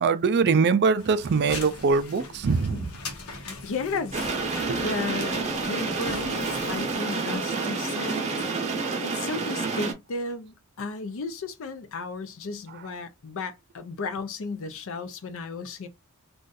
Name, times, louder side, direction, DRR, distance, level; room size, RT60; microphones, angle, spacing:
voice 1, 0.0-2.9 4.7-4.8, right 5 dB, 50° right, 0.4 m, -22 dB
sound 1, 1.0-7.0, left 3 dB, 85° left, 0.9 m, -41 dB
voice 2, 3.2-8.5 9.0-15.9, left 3 dB, 65° left, 0.5 m, -34 dB
Rain Interior Car, 4.1-9.9, right 4 dB, 30° right, 0.7 m, -29 dB
2.5 x 2.4 x 3.9 m
head